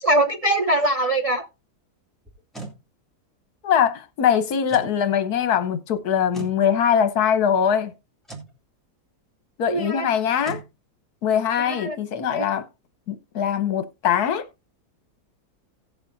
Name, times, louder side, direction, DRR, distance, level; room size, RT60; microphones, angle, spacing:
voice 1, 0.0-1.5 9.7-10.0 11.6-12.0 12.3-12.5, right 1 dB, 50° right, 0.4 m, -22 dB
sound 1, 2.3-2.8 4.6-5.0 6.3-6.6 8.2-8.5 10.4-10.7, right 3 dB, ahead, 2.2 m, -37 dB
voice 2, 3.6-7.9 9.6-10.6 11.2-12.7 13.1-14.5, left 8 dB, 70° left, 1.5 m, -22 dB
17.0 x 7.0 x 2.6 m
omnidirectional pair, 1.7 m